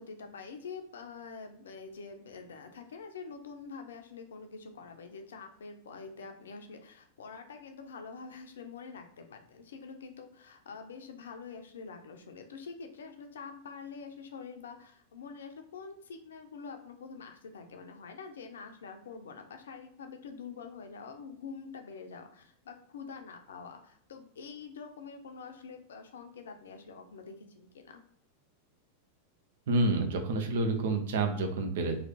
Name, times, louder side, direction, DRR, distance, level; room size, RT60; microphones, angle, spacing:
voice 1, 0.0-28.0, left 5 dB, 65° left, 6 dB, 0.6 m, -46 dB
voice 2, 29.7-32.0, right 2 dB, 55° right, 5 dB, 0.7 m, -28 dB
3.2 x 2.8 x 4.1 m, 0.63 s
figure-of-eight pair, 90°, 0 cm